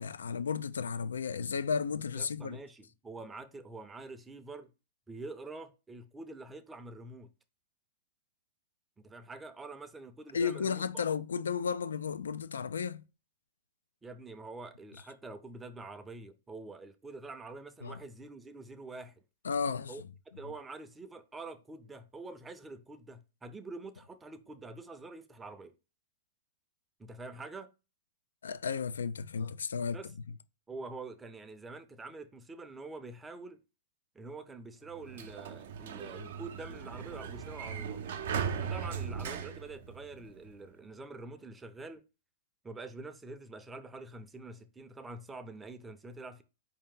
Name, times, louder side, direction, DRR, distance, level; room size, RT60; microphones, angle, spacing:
voice 1, 0.0-2.6 10.3-13.0 17.8-18.0 19.4-20.0 28.4-30.0, left 6 dB, 90° left, 0.3 m, -33 dB
voice 2, 2.2-4.7 5.1-7.3 9.0-11.0 14.0-19.2 19.9-20.0 20.3-25.7 27.0-27.7 29.9-30.1 30.7-33.6 34.1-38.0 38.6-42.0 42.6-46.4, right 3 dB, 10° right, 0.5 m, -46 dB
Sliding door, 34.9-40.5, right 7 dB, 70° right, 0.6 m, -38 dB
4.4 x 2.8 x 3.7 m
hypercardioid pair, 125°, 0 cm